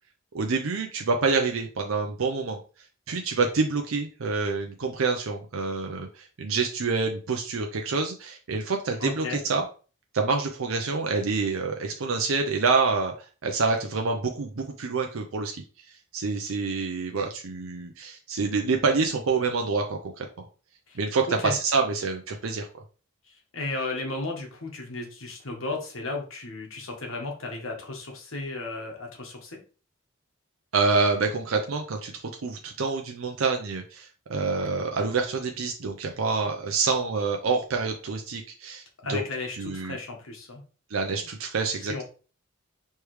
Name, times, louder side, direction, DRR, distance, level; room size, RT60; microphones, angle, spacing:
voice 1, 0.3-2.6 3.1-9.6 10.1-20.5 21.0-22.7 30.7-38.8 39.1-39.2 39.5-40.0 40.9-42.0, right 4 dB, 80° right, 2 dB, 0.6 m, -27 dB
voice 2, 9.0-9.4 20.9-21.0 21.3-21.5 23.5-29.6 39.0-40.6 41.2-41.3 41.9-42.0, left 2 dB, 75° left, 2 dB, 1.3 m, -34 dB
4.8 x 3.3 x 3.1 m, 0.37 s
head